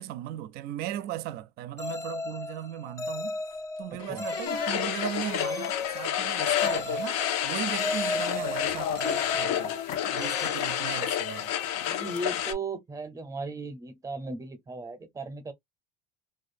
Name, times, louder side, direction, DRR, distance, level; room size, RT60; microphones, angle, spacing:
voice 1, 0.0-3.4 3.8-9.8 10.1-11.5, right 12 dB, 55° right, 0.4 m, -37 dB
sound 1, 1.8-11.6, left 3 dB, 15° left, 0.4 m, -36 dB
sound 2, 3.5-3.6 4.0-5.7 6.6-9.4 9.7-10.4, left 8 dB, 90° left, 1.2 m, -41 dB
sound 3, 4.5-12.5, left 10 dB, 70° left, 0.6 m, -30 dB
voice 2, 11.9-15.5, right 2 dB, 15° right, 0.7 m, -36 dB
2.5 x 2.3 x 2.5 m
supercardioid pair, 120°, 19 cm